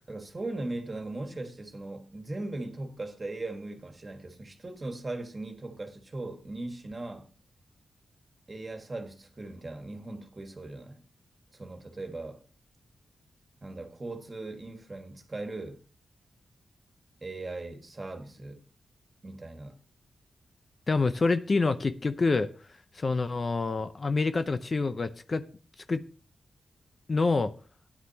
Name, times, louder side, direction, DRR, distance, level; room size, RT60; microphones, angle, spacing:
voice 1, 0.1-7.3 8.5-11.0 11.5-12.4 13.6-15.8 17.2-18.6 19.2-19.8, right 2 dB, 35° right, 1.8 m, -39 dB
voice 2, 20.9-22.5 22.9-25.4 25.9-26.0 27.1-27.5, left 3 dB, 45° left, 0.6 m, -27 dB
13.0 x 9.7 x 2.9 m
cardioid pair, 75°, 0 cm